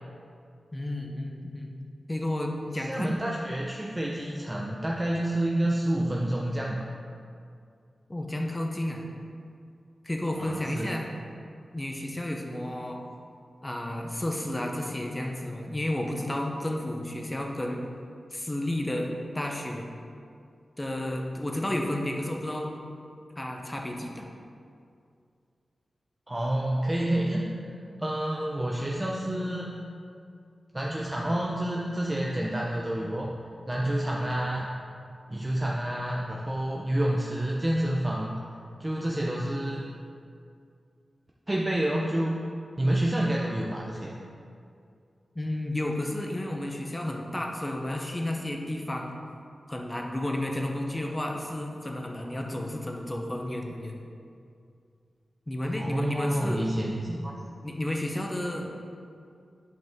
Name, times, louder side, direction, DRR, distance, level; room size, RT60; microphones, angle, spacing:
voice 1, 0.7-1.7 2.1-3.2 4.2-4.3 8.1-9.0 10.0-11.1 11.7-13.0 13.6-17.9 18.3-19.1 19.3-19.8 20.8-22.7 23.4-24.3 45.3-49.1 49.7-54.0 55.5-56.6 57.6-58.7, left 1 dB, 15° left, 1 dB, 0.8 m, -32 dB
voice 2, 2.8-6.9 10.4-10.9 26.3-27.5 28.0-29.8 30.7-33.3 33.7-34.7 35.3-38.4 38.8-39.9 41.5-42.3 42.8-44.1 55.7-57.3, right 1 dB, 15° right, -3 dB, 0.6 m, -28 dB
10.5 x 5.2 x 3.6 m, 2.4 s
wide cardioid pair, 115°, 0 cm